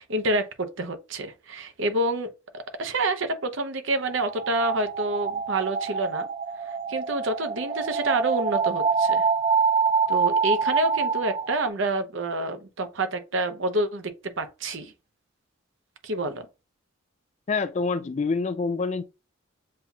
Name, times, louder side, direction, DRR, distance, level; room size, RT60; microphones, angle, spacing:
voice 1, 0.0-2.3 2.8-6.3 6.9-9.3 10.1-14.9 16.0-16.5, right 2 dB, 65° right, 0.7 m, -28 dB
sound 1, 3.9-11.7, right 5 dB, 30° right, 0.6 m, -26 dB
voice 2, 17.5-19.0, left 4 dB, 35° left, 0.3 m, -26 dB
7.4 x 2.7 x 2.3 m
head